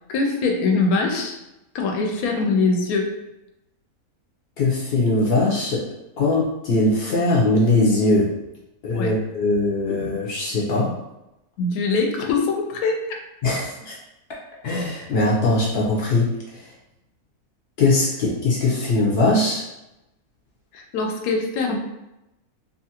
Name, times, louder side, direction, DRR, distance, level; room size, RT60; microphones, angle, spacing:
voice 1, 0.1-1.4 1.7-3.1 8.9-9.1 11.6-13.0 20.7-21.8, left 3 dB, 85° left, 2 dB, 1.0 m, -22 dB
voice 2, 4.6-5.9 6.2-8.3 8.8-10.9 13.4-14.0 14.6-16.3 17.8-19.6, left 2 dB, 60° left, -4 dB, 0.7 m, -20 dB
2.8 x 2.4 x 2.8 m, 0.91 s
omnidirectional pair, 1.5 m